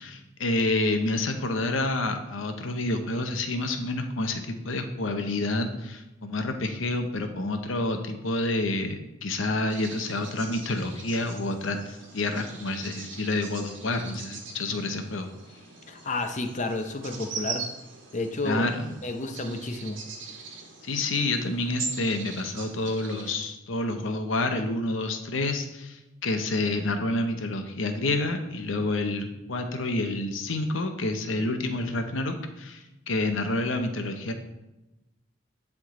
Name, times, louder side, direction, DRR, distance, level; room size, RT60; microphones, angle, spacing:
voice 1, 0.0-15.3 18.4-18.9 20.8-34.3, left 2 dB, 80° left, 6 dB, 0.8 m, -28 dB
sound 1, 9.7-23.5, right 5 dB, 70° right, 1.3 m, -41 dB
voice 2, 15.9-17.6 18.1-18.7 19.0-20.0, left 2 dB, 40° left, 5 dB, 0.6 m, -31 dB
10.5 x 3.7 x 3.7 m, 0.98 s
head